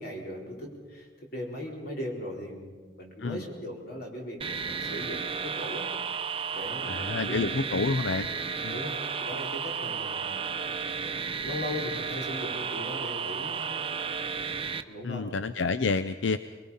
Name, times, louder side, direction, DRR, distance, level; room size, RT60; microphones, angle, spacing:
voice 1, 0.0-2.7 3.0-5.9 6.5-7.5 8.7-10.4 10.9-11.2 11.4-13.8 14.9-15.3, left 1 dB, 60° left, -1 dB, 4.3 m, -38 dB
sound 1, 4.4-14.8, right 6 dB, 30° right, 0.7 m, -33 dB
voice 2, 6.8-8.3 8.6-8.8 15.0-16.4, left 4 dB, 90° left, 12 dB, 0.6 m, -29 dB
23.5 x 21.5 x 5.6 m, 1.5 s
head